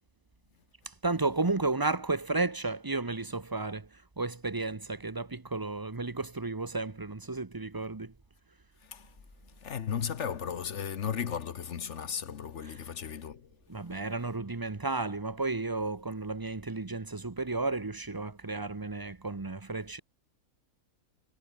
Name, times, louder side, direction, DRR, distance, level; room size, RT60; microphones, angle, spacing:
voice 1, 1.0-3.9 4.2-8.1 13.7-20.0, right 3 dB, 20° right, 0.7 m, -33 dB
voice 2, 9.6-13.5, left 7 dB, 55° left, 1.2 m, -35 dB
omnidirectional pair, 1.6 m